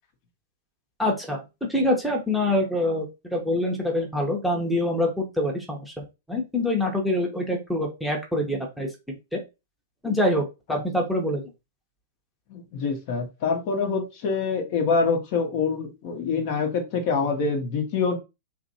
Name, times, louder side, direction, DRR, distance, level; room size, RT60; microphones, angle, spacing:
voice 1, 1.0-1.4 1.7-8.9 9.3-9.4 10.0-11.4, left 1 dB, ahead, -1 dB, 0.7 m, -25 dB
voice 2, 12.5-18.2, left 5 dB, 45° left, 4 dB, 0.8 m, -25 dB
3.0 x 2.5 x 2.6 m, 0.26 s
figure-of-eight pair, 105°, 0 cm